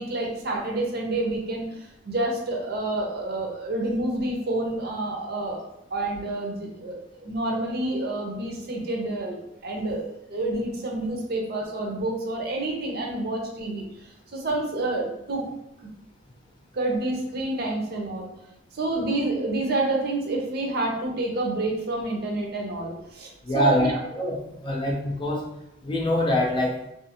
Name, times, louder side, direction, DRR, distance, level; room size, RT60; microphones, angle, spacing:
voice 1, 0.0-5.6 5.9-9.4 9.6-15.4 16.7-18.3 18.7-24.0, right 2 dB, 55° right, 0 dB, 0.6 m, -28 dB
voice 2, 23.5-25.4 25.8-26.8, left 1 dB, 25° left, 0 dB, 0.4 m, -24 dB
2.5 x 2.4 x 2.8 m, 0.86 s
head